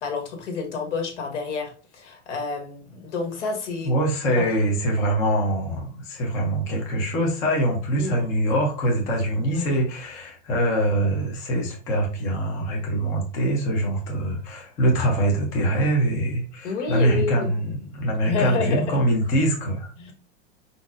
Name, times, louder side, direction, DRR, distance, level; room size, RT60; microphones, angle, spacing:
voice 1, 0.0-3.9 4.3-4.5 8.0-8.2 9.5-9.7 16.6-17.5 18.3-19.0 20.0-20.1, left 5 dB, 85° left, 3 dB, 1.6 m, -29 dB
voice 2, 3.8-20.1, right 1 dB, 10° left, 0 dB, 0.3 m, -24 dB
4.6 x 3.9 x 2.3 m, 0.38 s
supercardioid pair, 160°, 35 cm